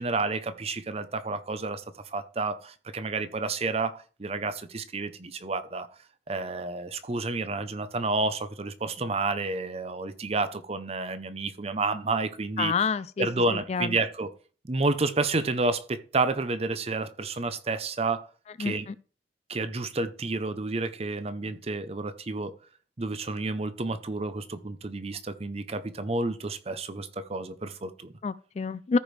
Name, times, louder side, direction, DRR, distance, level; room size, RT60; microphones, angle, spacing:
voice 1, 0.0-1.8 2.1-5.9 6.3-12.7 13.2-14.3 14.6-18.3 18.6-18.9 19.5-22.5 23.0-28.1, right 3 dB, 35° right, 0.6 m, -30 dB
voice 2, 12.6-14.0 18.6-18.9 28.2-29.0, left 5 dB, 35° left, 0.3 m, -29 dB
14.0 x 5.0 x 3.3 m
head